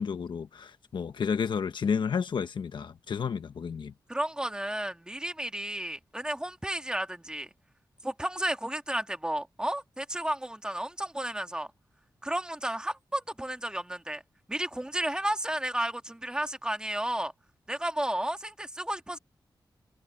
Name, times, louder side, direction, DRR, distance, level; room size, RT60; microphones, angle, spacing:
voice 1, 0.0-3.9, left 6 dB, 90° left, 1.3 m, -31 dB
voice 2, 4.1-7.5 8.0-11.7 12.2-14.2 14.5-17.3 17.7-19.2, right 1 dB, 10° right, 1.8 m, -32 dB
wide cardioid pair, 110°, 8 cm